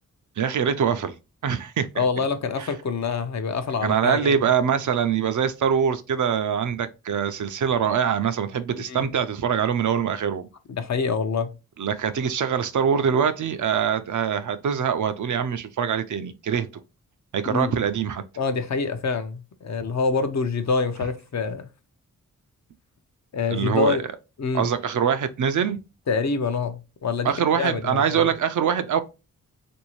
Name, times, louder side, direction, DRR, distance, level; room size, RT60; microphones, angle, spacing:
voice 1, 0.4-1.1 1.4-2.0 2.6-2.7 3.8-10.5 11.8-16.7 17.3-18.2 23.5-24.0 24.5-25.8 27.2-29.0, right 7 dB, 60° right, 0.5 m, -23 dB
voice 2, 2.0-4.3 8.9-9.1 10.7-11.5 17.5-17.7 18.4-21.7 23.3-24.0 24.4-24.7 26.1-28.3, left 5 dB, 55° left, 0.6 m, -26 dB
3.1 x 2.7 x 3.0 m
cardioid pair, 65°, 33 cm